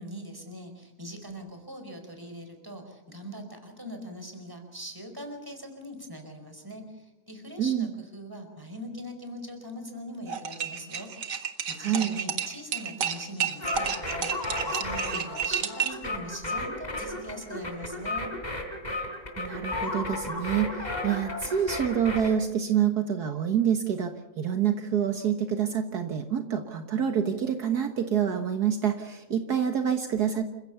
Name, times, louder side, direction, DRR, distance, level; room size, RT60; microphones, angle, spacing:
voice 1, 0.0-11.3 11.7-18.3, equal, 10° right, 5 dB, 4.6 m, -41 dB
voice 2, 7.6-7.9 11.8-12.1 19.4-30.5, right 8 dB, 65° right, 6 dB, 1.9 m, -27 dB
sound 1, 10.3-16.1, right 8 dB, 90° right, 2.4 m, -31 dB
sound 2, 13.6-22.3, left 2 dB, 25° left, 3.7 m, -34 dB
28.5 x 16.0 x 7.0 m, 1.0 s
omnidirectional pair, 1.8 m